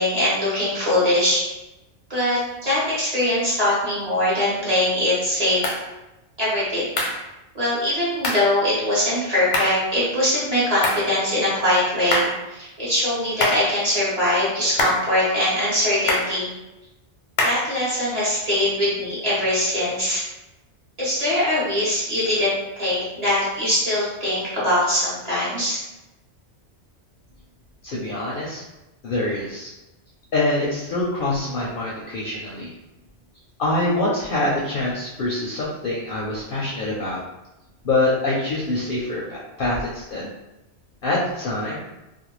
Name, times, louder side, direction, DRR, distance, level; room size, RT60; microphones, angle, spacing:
voice 1, 0.0-1.4 2.1-5.6 6.4-6.9 7.5-16.5 17.4-20.2 21.0-25.8, left 1 dB, 35° right, -9 dB, 0.9 m, -22 dB
sound 1, 5.6-5.8 7.0-7.2 8.2-8.5 9.5-9.8 10.8-11.1 12.1-12.4 13.4-13.7 14.8-15.1 16.1-16.4 17.4-17.7, left 2 dB, 90° left, 0.9 m, -24 dB
voice 2, 27.8-28.6 29.0-29.7 30.3-32.7 33.6-37.2 37.8-40.3 41.0-41.8, left 2 dB, 60° left, -5 dB, 0.6 m, -25 dB
2.5 x 2.1 x 3.0 m, 0.99 s
omnidirectional pair, 1.2 m